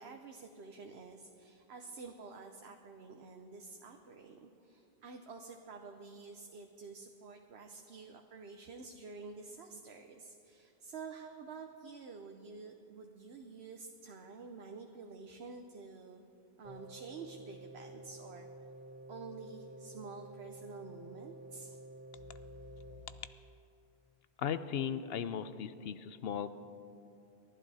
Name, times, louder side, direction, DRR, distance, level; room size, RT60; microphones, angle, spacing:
voice 1, 0.0-16.2 16.6-18.5 19.1-21.8, right 4 dB, 80° right, 4 dB, 1.1 m, -49 dB
sound 1, 16.6-22.9, right 1 dB, 45° right, 3.2 m, -51 dB
voice 2, 24.4-26.6, left 8 dB, 70° left, 12 dB, 0.9 m, -37 dB
29.5 x 11.5 x 4.2 m, 2.8 s
omnidirectional pair, 1.0 m